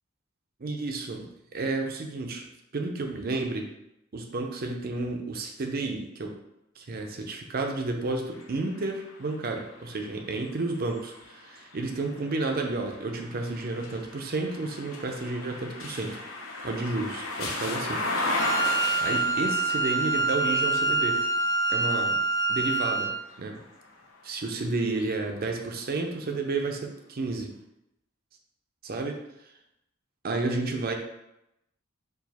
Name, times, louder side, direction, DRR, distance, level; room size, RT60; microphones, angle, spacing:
voice 1, 0.6-2.5 2.7-3.7 4.1-6.3 6.8-16.2 16.6-18.0 18.3-21.2 21.7-22.2 22.5-23.1 23.4-23.6 24.2-27.5 28.8-29.2 30.2-30.9, right 3 dB, 45° right, 3 dB, 0.6 m, -31 dB
sound 1, 8.3-24.3 24.8-26.0, left 2 dB, 85° left, 0.8 m, -37 dB
Wind instrument woodwind instrument, 18.4-23.2, right 3 dB, 15° left, 0.4 m, -26 dB
4.6 x 2.5 x 4.1 m, 0.86 s
head